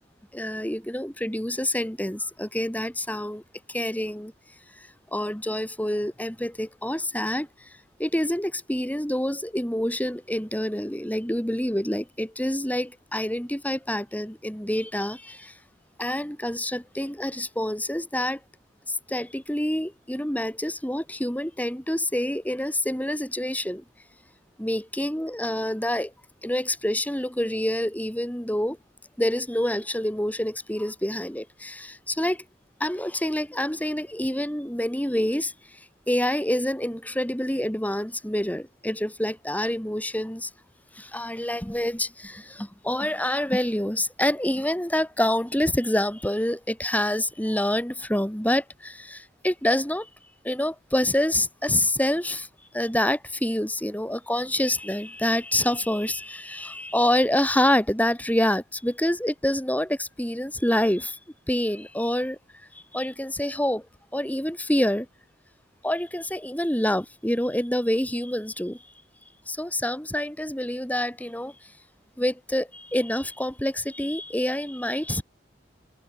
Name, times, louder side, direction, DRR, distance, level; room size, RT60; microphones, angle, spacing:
voice 1, 0.3-3.4 3.7-4.3 4.8-7.7 8.0-15.5 16.0-18.4 18.9-23.8 24.6-26.1 26.4-28.8 29.2-32.4 32.8-35.8 36.1-40.5 40.9-50.1 50.4-52.5 52.7-61.2 61.5-62.4 62.7-63.8 64.1-65.1 65.8-68.8 69.5-71.5 72.2-75.2, left 1 dB, 10° left, 5.1 m, -27 dB
head